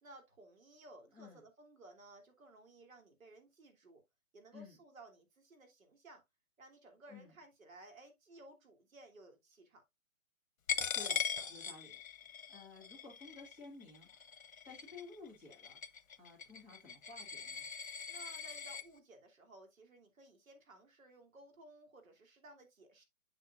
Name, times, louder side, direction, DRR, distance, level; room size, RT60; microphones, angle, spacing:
voice 1, 0.0-4.0 4.3-6.2 6.6-9.8 18.1-23.0, right 2 dB, 65° right, 3.0 m, -58 dB
Coin (dropping), 10.7-18.8, left 7 dB, 70° left, 1.0 m, -41 dB
voice 2, 10.9-11.2 11.5-14.3 14.6-15.8 16.2-17.7, left 4 dB, 5° right, 1.0 m, -54 dB
7.6 x 7.3 x 2.4 m
hypercardioid pair, 160°, 43 cm